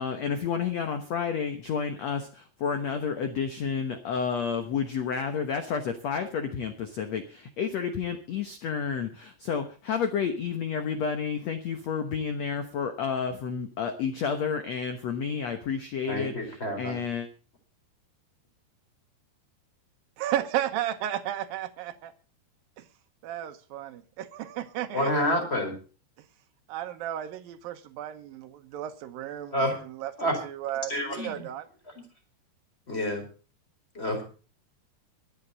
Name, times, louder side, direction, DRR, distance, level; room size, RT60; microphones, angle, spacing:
voice 1, 0.0-17.3, left 6 dB, 70° left, 1.6 m, -30 dB
voice 2, 16.1-17.0 24.9-25.8 29.5-29.8 30.2-30.4 30.9-31.5 32.9-33.3 33.9-34.2, equal, 15° left, 4.3 m, -28 dB
voice 3, 20.2-22.1 22.8-22.9 23.2-25.3 26.2-26.3 26.7-30.1 30.4-31.7, right 12 dB, 70° right, 2.6 m, -34 dB
23.0 x 8.5 x 4.1 m
omnidirectional pair, 4.8 m